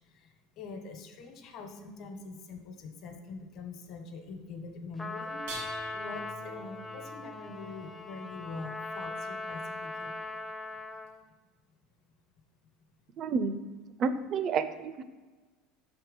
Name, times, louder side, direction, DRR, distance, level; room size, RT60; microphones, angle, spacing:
voice 1, 0.6-5.4 5.9-10.4, left 3 dB, 55° left, 5 dB, 1.2 m, -44 dB
Trumpet, 5.0-11.2, left 3 dB, 15° left, 0.5 m, -40 dB
sound 1, 5.3-8.6 10.1-10.2 11.1-11.2, right 3 dB, 85° right, 1.6 m, -47 dB
voice 2, 13.2-13.6 14.0-15.0, right 5 dB, 45° right, 12 dB, 0.5 m, -30 dB
5.8 x 4.4 x 5.3 m, 1.3 s
supercardioid pair, 110°, 0 cm